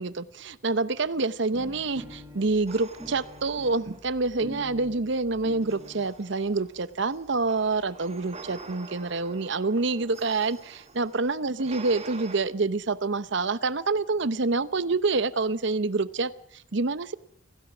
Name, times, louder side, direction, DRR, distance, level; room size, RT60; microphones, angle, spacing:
voice 1, 0.0-17.1, right 3 dB, 65° right, 0.9 m, -27 dB
sound 1, 1.5-6.1 6.9-7.0 7.3-7.4 7.6-7.7 7.9-8.6, equal, 10° right, 3.6 m, -45 dB
sound 2, 2.7-4.7 5.6-12.4, right 3 dB, 35° right, 2.4 m, -46 dB
26.0 x 16.0 x 6.2 m
head